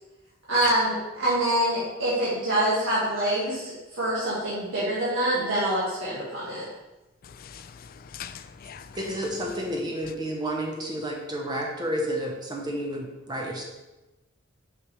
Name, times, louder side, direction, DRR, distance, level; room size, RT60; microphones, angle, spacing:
voice 1, 0.5-6.6, right 1 dB, 75° right, 1.9 m, -25 dB
voice 2, 7.2-9.1, left 9 dB, 45° left, 0.3 m, -40 dB
voice 3, 8.9-13.6, equal, 20° right, 0.8 m, -31 dB
6.0 x 5.3 x 3.2 m
head